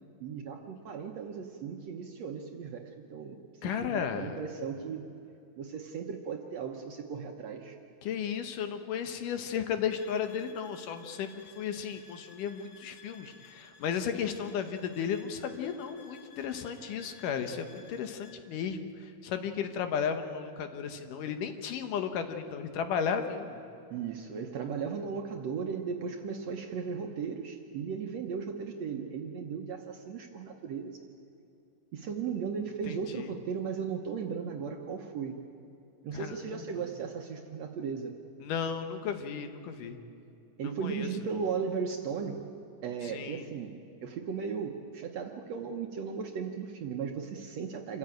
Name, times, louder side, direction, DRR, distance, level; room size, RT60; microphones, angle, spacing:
voice 1, 0.2-5.1 5.6-7.8 23.9-31.1 31.9-35.4 36.0-38.1 40.6-42.5 42.8-43.7 44.0-48.0, right 6 dB, 65° right, 3 dB, 1.8 m, -36 dB
voice 2, 3.6-4.4 8.0-23.6 32.9-33.3 36.1-36.6 38.4-40.0 40.6-41.1 43.0-43.5, left 7 dB, 70° left, 7 dB, 2.6 m, -34 dB
sound 1, 9.9-18.4, left 5 dB, 55° left, 1.0 m, -56 dB
27.0 x 14.5 x 9.0 m, 2.7 s
omnidirectional pair, 4.0 m